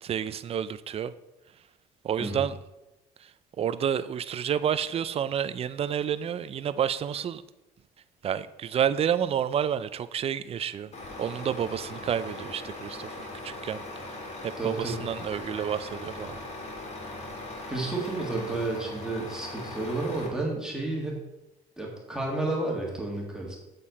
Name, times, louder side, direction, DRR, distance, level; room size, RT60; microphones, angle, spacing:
voice 1, 0.0-1.1 2.0-2.5 3.6-7.4 8.2-10.9 11.2-13.8 14.4-16.4, right 8 dB, 35° right, 14 dB, 0.4 m, -29 dB
Truck, 10.9-20.3, left 2 dB, 40° left, 1.8 m, -40 dB
voice 2, 14.6-15.1 17.7-21.2 21.8-23.6, right 2 dB, 5° right, -2 dB, 2.0 m, -31 dB
7.4 x 6.6 x 4.1 m, 0.97 s
cardioid pair, 110°, 17 cm